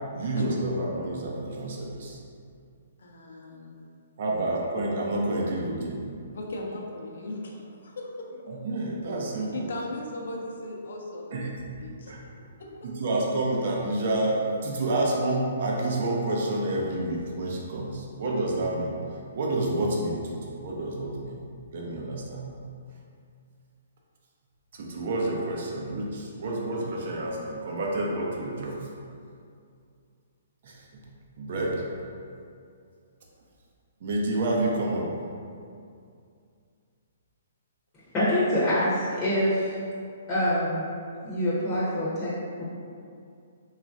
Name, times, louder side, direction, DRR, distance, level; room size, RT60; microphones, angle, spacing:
voice 1, 0.1-2.2 4.2-6.0 8.5-9.7 11.3-11.8 12.1-12.2 12.8-19.0 19.3-21.4 21.7-22.5 24.7-28.8 30.6-30.9 31.4-31.8 34.0-35.1, right 2 dB, 55° right, -2 dB, 0.5 m, -29 dB
voice 2, 3.0-3.8 6.3-8.3 9.5-11.5 11.8-12.3 12.6-12.9, left 2 dB, 70° left, -1 dB, 0.5 m, -37 dB
voice 3, 38.1-39.8 40.3-40.9 41.2-42.3 42.6-42.7, equal, 20° left, -10 dB, 0.7 m, -25 dB
3.1 x 2.3 x 2.5 m, 2.4 s
hypercardioid pair, 150°, 0 cm